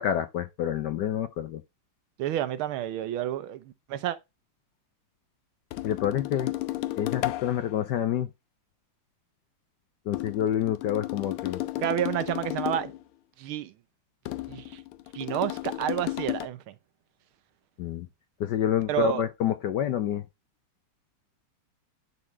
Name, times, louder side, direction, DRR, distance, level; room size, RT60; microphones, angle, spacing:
voice 1, 0.0-1.6 5.8-6.5 7.0-8.3 10.1-11.6 17.8-18.1 18.4-20.2, left 10 dB, 70° left, 1.0 m, -28 dB
voice 2, 2.2-4.2 11.8-12.9 13.4-13.7 14.5-14.8 15.1-16.8 18.9-19.2, right 11 dB, 75° right, 1.6 m, -30 dB
sound 1, 5.7-7.8 10.1-13.0 14.3-16.5, left 16 dB, 85° left, 1.6 m, -33 dB
11.0 x 4.2 x 3.2 m
omnidirectional pair, 2.4 m